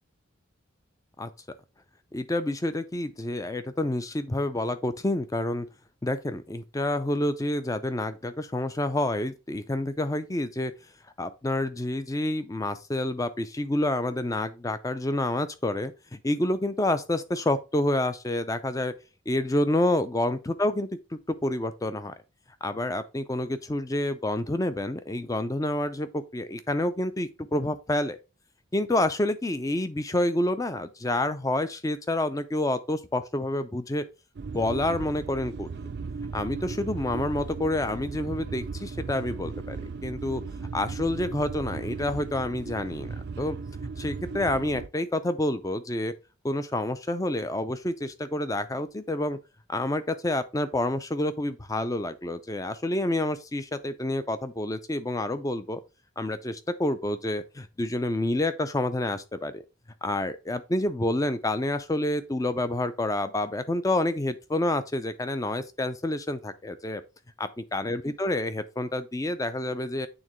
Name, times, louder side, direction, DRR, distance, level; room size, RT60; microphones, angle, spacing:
voice 1, 2.1-5.7 6.0-10.7 11.2-18.9 19.3-22.1 22.6-28.2 28.7-34.0 34.5-35.7 36.3-40.4 40.7-43.1 43.4-43.6 44.0-46.1 46.4-49.4 49.7-55.8 56.2-59.6 60.0-67.0 67.4-70.1, left 1 dB, 15° left, 0.4 m, -28 dB
sound 1, 34.4-44.9, right 4 dB, 55° right, 0.4 m, -36 dB
8.8 x 3.6 x 3.1 m
head